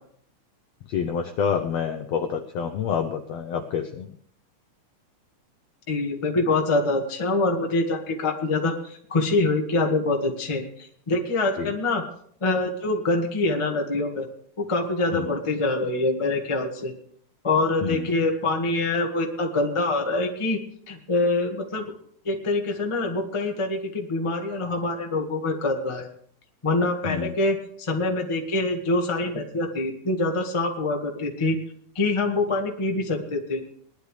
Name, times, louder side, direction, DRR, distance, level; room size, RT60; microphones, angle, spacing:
voice 1, 0.9-4.1 11.6-11.7 15.1-15.3 17.8-18.1 27.0-27.3, left 7 dB, 75° left, 6 dB, 1.5 m, -28 dB
voice 2, 5.9-8.7 9.1-12.0 12.4-14.2 14.6-16.9 17.4-20.6 20.9-21.9 22.2-26.0 26.6-31.6 31.9-33.6, left 2 dB, 25° left, 2 dB, 0.6 m, -25 dB
20.5 x 12.0 x 3.3 m, 0.62 s
omnidirectional pair, 3.9 m